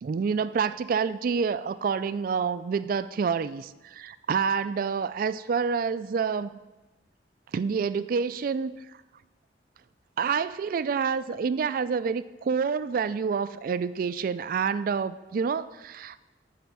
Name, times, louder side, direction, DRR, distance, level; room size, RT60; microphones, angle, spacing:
voice 1, 0.0-6.6 7.5-8.7 10.2-16.2, right 6 dB, 50° right, 15 dB, 0.3 m, -28 dB
9.4 x 4.2 x 7.0 m, 1.1 s
head